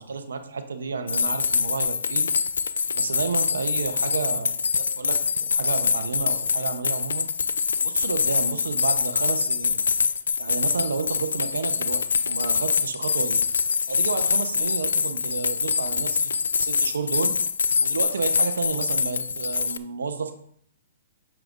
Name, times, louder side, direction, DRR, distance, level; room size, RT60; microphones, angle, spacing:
voice 1, 0.0-2.3 2.9-7.3 7.8-9.8 10.4-13.4 13.9-17.4 17.8-20.3, right 4 dB, 85° right, 8 dB, 0.8 m, -31 dB
sound 1, 1.1-19.8, left 6 dB, 85° left, 0.4 m, -25 dB
8.9 x 6.6 x 2.6 m, 0.66 s
hypercardioid pair, 140°, 0 cm